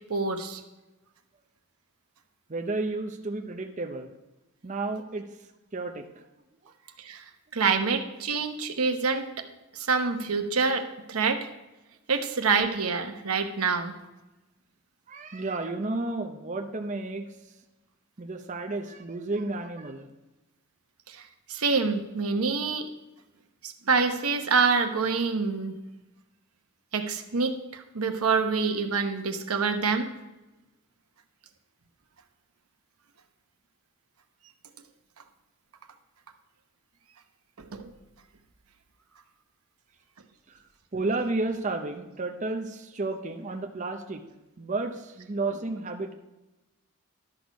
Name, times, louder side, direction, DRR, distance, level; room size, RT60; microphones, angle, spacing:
voice 1, 0.1-0.6 7.0-7.2 7.5-9.2 9.7-11.5 12.1-13.9 21.1-21.2 21.5-22.9 23.6-25.8 26.9-30.1 37.7-37.9, right 4 dB, 85° right, 6 dB, 0.9 m, -26 dB
voice 2, 2.5-4.1 4.6-5.3 5.7-6.1 15.1-17.3 18.2-20.1 40.9-44.2 44.6-46.1, right 2 dB, 35° right, 5 dB, 0.6 m, -32 dB
12.0 x 6.4 x 5.2 m, 1.0 s
head